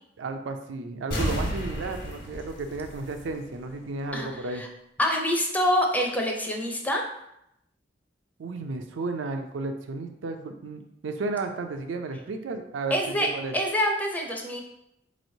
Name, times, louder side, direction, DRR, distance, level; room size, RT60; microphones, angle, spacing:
voice 1, 0.2-4.6 8.4-13.5, right 3 dB, 90° right, 5 dB, 0.4 m, -33 dB
sound 1, 1.1-3.7 4.1-4.2, equal, 55° left, 1.1 m, -32 dB
voice 2, 4.1-4.7 5.0-7.0 12.9-14.6, equal, 10° left, 1 dB, 0.4 m, -26 dB
4.2 x 3.1 x 2.7 m, 0.81 s
head